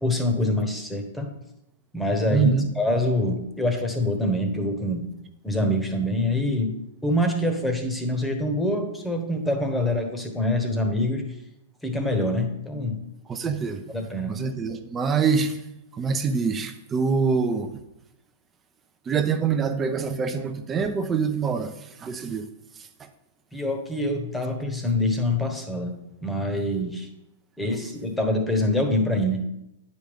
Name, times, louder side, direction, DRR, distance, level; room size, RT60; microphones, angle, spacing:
voice 1, 0.0-1.3 1.9-5.1 5.4-6.7 7.0-11.2 11.8-13.0 13.9-14.3 23.5-25.9 26.2-27.1 27.6-29.4, left 1 dB, 5° left, 5 dB, 1.1 m, -25 dB
voice 2, 2.3-2.7 13.3-13.8 14.3-15.6 15.9-17.7 19.1-22.5 22.8-23.1, right 5 dB, 20° right, 8 dB, 0.5 m, -25 dB
9.2 x 5.2 x 3.6 m, 0.88 s
hypercardioid pair, 115°, 0 cm